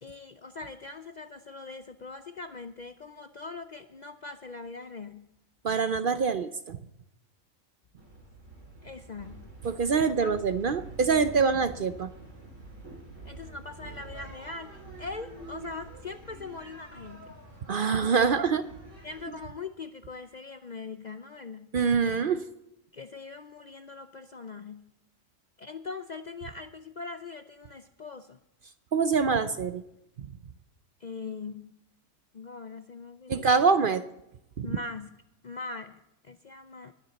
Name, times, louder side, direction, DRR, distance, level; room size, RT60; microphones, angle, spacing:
voice 1, 0.0-5.3 8.8-9.5 9.9-10.4 13.2-17.3 19.0-21.7 22.9-24.9 25.6-28.4 31.0-31.8 32.3-33.5 34.6-35.1 35.4-36.9, left 4 dB, 50° left, 9 dB, 0.5 m, -41 dB
voice 2, 5.6-6.8 9.6-12.1 17.7-18.6 21.7-22.4 28.9-29.8 33.3-34.0 34.6-34.8, right 5 dB, 55° right, 11 dB, 0.7 m, -25 dB
sound 1, 8.0-19.3, right 2 dB, 70° right, 4.5 m, -46 dB
20.5 x 9.5 x 4.0 m, 0.87 s
omnidirectional pair, 1.3 m